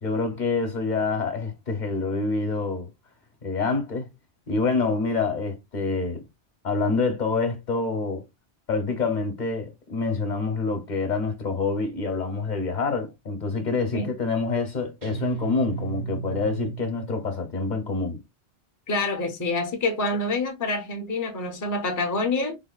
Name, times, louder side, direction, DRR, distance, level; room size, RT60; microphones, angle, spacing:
voice 1, 0.0-2.9 3.4-4.1 4.5-6.2 6.6-8.2 8.7-18.2, left 4 dB, 50° left, 0.8 m, -26 dB
Guitar, 15.0-17.6, right 7 dB, 55° right, 0.5 m, -34 dB
voice 2, 18.9-22.6, left 2 dB, 25° left, 0.4 m, -27 dB
3.5 x 2.2 x 2.2 m
omnidirectional pair, 1.1 m